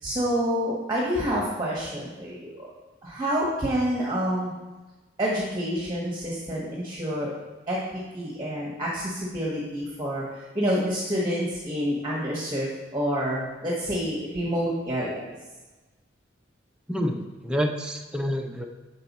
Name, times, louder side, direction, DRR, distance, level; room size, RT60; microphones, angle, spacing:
voice 1, 0.0-2.7 3.0-4.5 5.2-7.3 7.7-15.2, equal, 20° right, -4 dB, 1.2 m, -28 dB
voice 2, 16.9-18.7, equal, 5° right, 2 dB, 0.4 m, -28 dB
6.6 x 4.3 x 4.1 m, 1.2 s
head